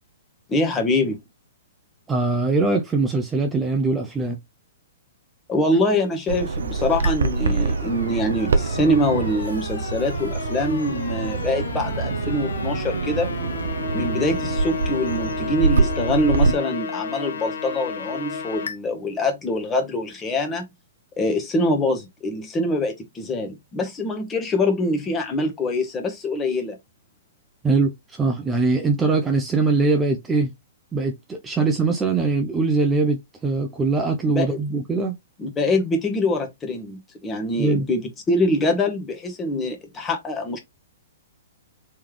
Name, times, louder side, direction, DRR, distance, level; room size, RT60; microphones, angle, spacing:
voice 1, 0.5-1.2 5.5-13.3 13.9-20.6 21.2-26.8 34.3-34.8 35.4-38.0 38.3-40.6, left 1 dB, 15° left, 1.1 m, -24 dB
voice 2, 2.1-4.4 27.6-30.5 30.9-35.1 37.6-37.9, right 3 dB, 10° right, 0.5 m, -22 dB
Bird vocalization bird call bird song, 6.3-16.5, right 4 dB, 60° right, 0.5 m, -25 dB
sound 1, 7.0-18.8, left 5 dB, 60° left, 0.7 m, -33 dB
3.4 x 3.3 x 3.2 m
figure-of-eight pair, 115°, 0 cm